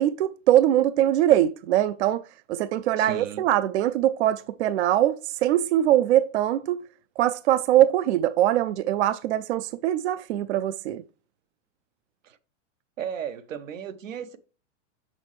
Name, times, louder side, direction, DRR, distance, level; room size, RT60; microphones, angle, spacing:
voice 1, 0.0-2.2 2.5-6.8 7.2-11.0, right 12 dB, 60° right, 0.5 m, -22 dB
voice 2, 3.0-3.4 12.2-12.4 13.0-14.4, right 8 dB, 85° right, 1.1 m, -35 dB
6.3 x 6.3 x 3.1 m
hypercardioid pair, 145°, 38 cm